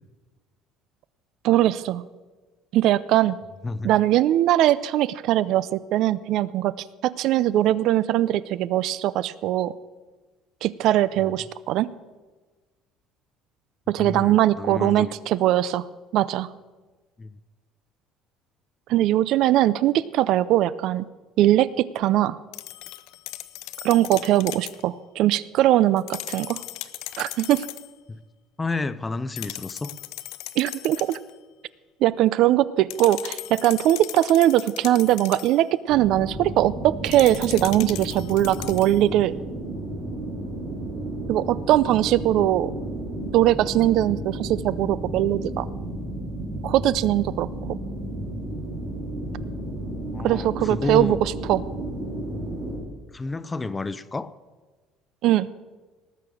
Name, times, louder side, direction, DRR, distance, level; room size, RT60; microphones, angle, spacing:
voice 1, 1.4-2.0 2.7-3.4 3.8-6.7 7.0-9.7 10.6-11.9 13.9-15.8 16.1-16.5 18.9-21.1 21.4-22.4 23.8-26.6 27.2-27.7 30.6-31.2 32.0-39.4 41.3-42.7 43.3-45.7 46.6-47.8 50.2-51.6 55.2-55.5, right 13 dB, 55° right, 18 dB, 0.4 m, -21 dB
voice 2, 14.0-15.1 17.2-17.4 28.1-28.2 28.6-29.9 50.1-51.2 53.1-54.3, left 3 dB, 15° left, 15 dB, 0.4 m, -30 dB
sound 1, 22.5-24.8 26.0-27.9 29.4-31.3 32.9-35.6 37.1-39.0, left 17 dB, 80° left, 0.6 m, -38 dB
sound 2, 35.9-52.8, right 1 dB, 15° right, 3.5 m, -33 dB
18.5 x 6.8 x 6.3 m, 1.3 s
cardioid pair, 165°, 0 cm